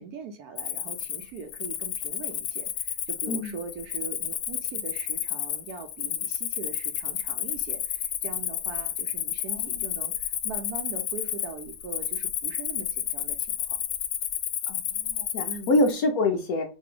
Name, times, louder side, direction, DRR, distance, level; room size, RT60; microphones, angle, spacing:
voice 1, 0.0-13.8 15.5-15.7, right 5 dB, 70° right, 1.0 m, -41 dB
Cricket, 0.6-15.9, left 11 dB, 85° left, 1.3 m, -31 dB
voice 2, 9.5-9.8 14.7-16.6, left 2 dB, 65° left, 1.0 m, -26 dB
4.1 x 2.6 x 3.6 m
omnidirectional pair, 2.0 m